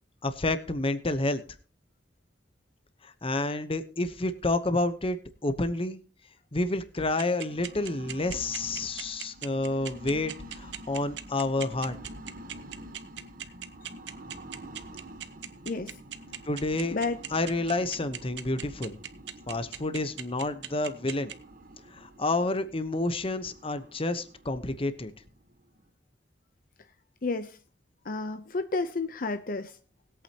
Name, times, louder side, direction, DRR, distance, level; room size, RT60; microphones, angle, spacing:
voice 1, 0.2-1.4 3.0-6.0 6.5-12.0 16.5-17.0 17.3-19.0 19.5-21.3 21.9-25.1, left 2 dB, 30° left, 11 dB, 1.0 m, -29 dB
sound 1, 7.2-25.9, right 1 dB, 55° right, 1.2 m, -48 dB
sound 2, 7.2-21.3, right 10 dB, 80° right, 1.0 m, -38 dB
voice 2, 15.7-16.0 16.9-17.2 27.2-27.6 28.0-29.8, left 3 dB, 55° left, 9 dB, 0.7 m, -31 dB
20.5 x 8.6 x 2.9 m, 0.40 s
head